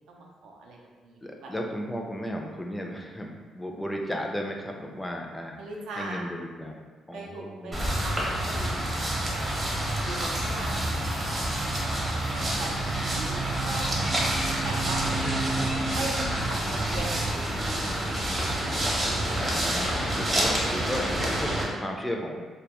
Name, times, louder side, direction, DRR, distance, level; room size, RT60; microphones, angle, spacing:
voice 1, 0.1-1.5 5.6-6.2 7.1-9.0 9.4-11.9 12.4-15.0 15.9-16.2 16.5-17.6, right 2 dB, 85° right, -2 dB, 0.4 m, -40 dB
voice 2, 1.2-5.6 6.0-6.8 7.1-8.0 15.1-16.1 19.4-22.4, equal, 10° left, 1 dB, 0.3 m, -35 dB
sound 1, 7.7-21.6, right 1 dB, 25° right, 0.6 m, -28 dB
2.1 x 2.1 x 2.8 m, 1.4 s
cardioid pair, 90°, 0 cm